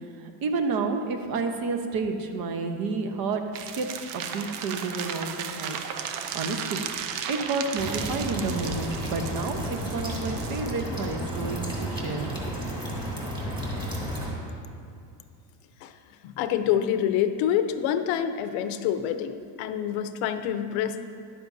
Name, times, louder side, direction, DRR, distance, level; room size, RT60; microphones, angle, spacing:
voice 1, 0.2-3.4 3.7-3.9 4.1-5.8 6.3-6.8 7.3-12.5, right 4 dB, 45° right, 5 dB, 1.0 m, -30 dB
sound 1, 3.5-10.7, right 8 dB, 80° right, 0.8 m, -35 dB
sound 2, 7.8-14.3, equal, 10° right, 1.9 m, -32 dB
voice 2, 16.2-21.0, left 9 dB, 70° left, 9 dB, 0.8 m, -27 dB
12.0 x 11.0 x 2.7 m, 2.4 s
cardioid pair, 145°, 47 cm